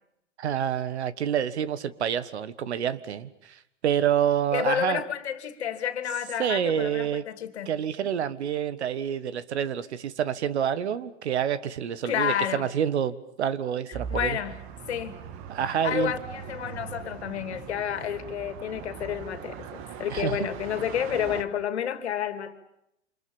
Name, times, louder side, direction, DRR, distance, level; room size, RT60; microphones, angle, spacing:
voice 1, 0.4-5.0 6.4-7.2 7.6-14.4 15.5-16.1 20.1-20.5, right 9 dB, 65° right, 15 dB, 1.6 m, -28 dB
voice 2, 4.5-7.7 12.0-12.6 14.1-14.5 14.9-15.2 15.7-22.5, left 9 dB, 65° left, 10 dB, 2.7 m, -30 dB
sound 1, 13.9-21.4, right 8 dB, 35° right, 2.0 m, -40 dB
28.5 x 27.0 x 7.2 m, 0.80 s
figure-of-eight pair, 110°, 36 cm